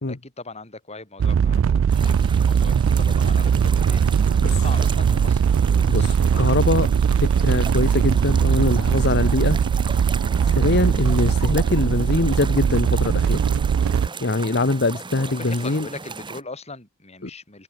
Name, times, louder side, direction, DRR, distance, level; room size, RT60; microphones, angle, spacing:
voice 1, 0.1-4.0 4.4-6.4 14.5-14.6 15.2-17.6, left 3 dB, 30° left, 7.1 m, -40 dB
sound 1, 1.2-14.1, right 7 dB, 65° right, 0.3 m, -20 dB
sound 2, 1.9-16.4, right 4 dB, 25° right, 1.5 m, -37 dB
voice 2, 5.9-6.9 7.2-9.6 10.4-13.4 14.2-15.9 17.2-17.3, left 2 dB, 55° left, 1.2 m, -23 dB
open air
head